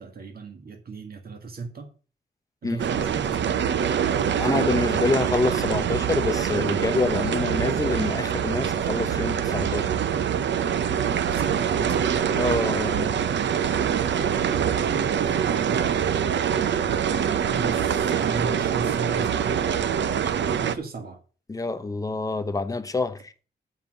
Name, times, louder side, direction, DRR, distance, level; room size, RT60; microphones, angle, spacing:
voice 1, 0.0-1.9 2.6-3.5 11.1-12.1 14.1-16.3 17.1-21.2, right 4 dB, 55° right, 1.8 m, -36 dB
sound 1, 2.8-20.8, right 8 dB, 90° right, 0.7 m, -24 dB
voice 2, 4.4-9.9 12.3-13.1 21.5-23.3, left 3 dB, 20° left, 0.8 m, -26 dB
7.2 x 5.7 x 7.6 m
wide cardioid pair, 135°, 18 cm